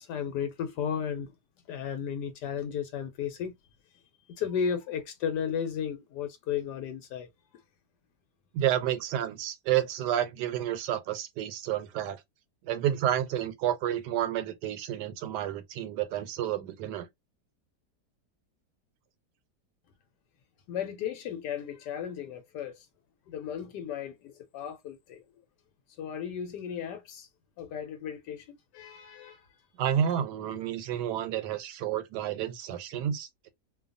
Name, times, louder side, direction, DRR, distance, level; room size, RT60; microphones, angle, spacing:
voice 1, 0.0-1.3 1.7-3.5 4.3-7.3 20.7-22.8 23.3-25.2 26.0-27.3 27.6-29.4, left 8 dB, 85° left, 1.2 m, -34 dB
voice 2, 8.5-12.2 12.6-17.1 29.8-33.5, right 10 dB, 80° right, 1.2 m, -30 dB
2.7 x 2.2 x 2.4 m
omnidirectional pair, 1.8 m